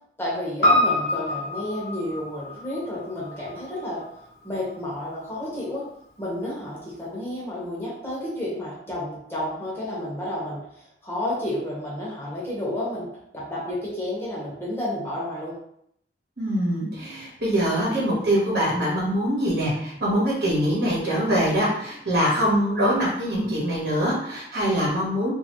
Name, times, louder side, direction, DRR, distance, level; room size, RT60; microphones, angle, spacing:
voice 1, 0.2-4.0 4.4-5.8 6.2-13.1 13.3-15.5, left 1 dB, 15° left, -7 dB, 1.0 m, -31 dB
Piano, 0.6-5.1 5.4-5.5, left 1 dB, 65° left, 0.8 m, -26 dB
voice 2, 16.4-25.3, equal, 60° right, -5 dB, 1.1 m, -23 dB
2.8 x 2.6 x 3.0 m, 0.72 s
head